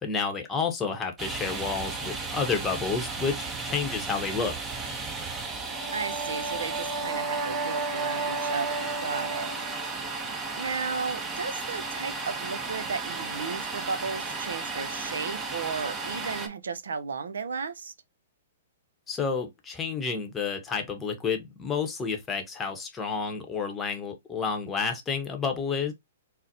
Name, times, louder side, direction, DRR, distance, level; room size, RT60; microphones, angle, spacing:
voice 1, 0.0-4.5 19.1-25.9, left 5 dB, 15° left, 0.8 m, -30 dB
Domestic sounds home sounds, 1.2-16.5, right 4 dB, 15° right, 0.6 m, -34 dB
Brass instrument, 5.6-9.9, right 3 dB, 45° right, 0.8 m, -33 dB
voice 2, 5.9-9.5 10.6-17.9, right 5 dB, 85° right, 0.5 m, -34 dB
3.9 x 2.1 x 2.5 m
hypercardioid pair, 135°, 0 cm